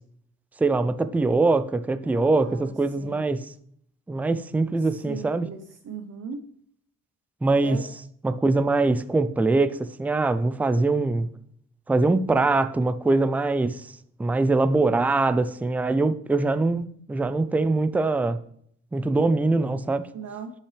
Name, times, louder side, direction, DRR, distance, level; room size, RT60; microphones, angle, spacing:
voice 1, 0.6-3.5 4.1-5.5 7.4-7.9 8.2-11.3 11.9-13.9 14.2-18.4 18.9-20.1, right 3 dB, 5° right, 13 dB, 0.3 m, -23 dB
voice 2, 2.0-3.2 5.1-6.4 7.6-7.8 20.1-20.5, right 6 dB, 55° right, 5 dB, 0.9 m, -38 dB
8.4 x 5.8 x 3.3 m, 0.66 s
cardioid pair, 90°, 30 cm